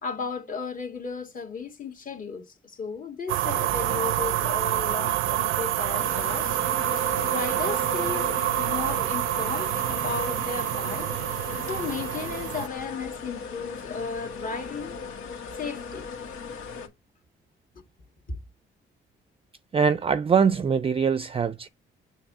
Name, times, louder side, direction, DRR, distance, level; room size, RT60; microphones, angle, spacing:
voice 1, 0.0-6.5 7.2-11.1 11.7-15.0 15.6-16.1 17.8-17.9 18.3-18.4, left 5 dB, 45° left, 1.9 m, -35 dB
sound 1, 3.3-12.7, right 15 dB, 85° right, 0.5 m, -27 dB
sound 2, 6.0-16.9, left 5 dB, 85° left, 1.8 m, -37 dB
voice 2, 19.7-21.7, right 6 dB, 30° right, 0.4 m, -23 dB
7.4 x 2.9 x 4.7 m
cardioid pair, 90°, 20 cm